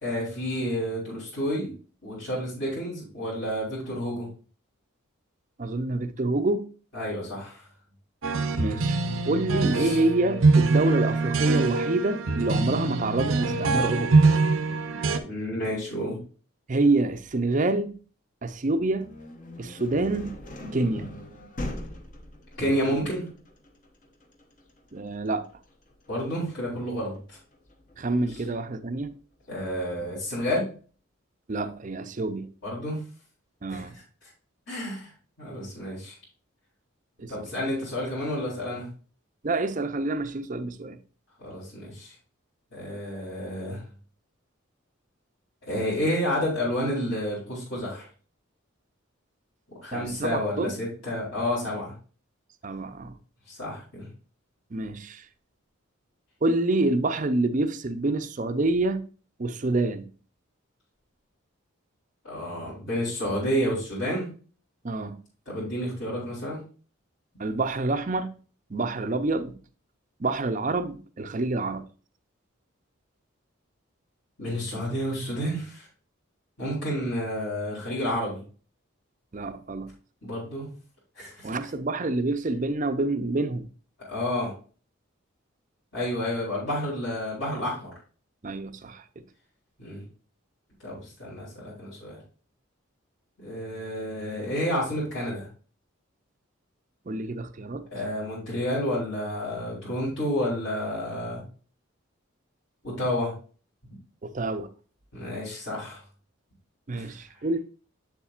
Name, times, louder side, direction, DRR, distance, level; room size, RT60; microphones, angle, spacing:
voice 1, 0.0-1.7 2.0-4.3 6.9-7.6 9.6-10.0 15.2-16.2 22.6-23.2 26.1-27.4 28.3-28.4 29.5-30.7 32.6-33.0 33.7-33.8 34.7-35.1 35.4-36.1 37.3-38.9 41.4-42.1 42.7-43.8 45.7-48.1 49.8-51.9 53.5-54.1 62.2-64.3 65.5-66.6 74.4-75.9 76.6-78.4 80.2-80.7 81.2-81.5 84.1-84.5 85.9-87.9 89.8-90.0 90.8-92.2 93.4-95.5 97.9-101.4 102.8-103.3 105.1-106.0 106.9-107.2, equal, 60° left, 3.5 m, -30 dB
voice 2, 5.6-6.7 8.6-14.1 16.7-17.9 18.4-19.1 19.6-20.4 20.7-21.1 24.9-25.5 28.0-29.1 31.5-32.5 33.6-33.9 37.2-37.3 39.4-41.0 49.9-50.7 52.6-53.1 54.7-55.3 56.4-59.1 59.4-60.1 64.8-65.2 67.4-68.3 68.7-69.6 70.2-71.9 79.3-79.9 81.4-83.7 88.4-89.2 97.1-97.9 104.2-104.7 106.9-107.6, right 2 dB, 35° right, 0.5 m, -27 dB
sound 1, 8.2-15.2, right 3 dB, 75° right, 0.7 m, -23 dB
sound 2, 18.7-28.5, left 1 dB, 40° left, 0.9 m, -41 dB
7.4 x 7.1 x 2.4 m
head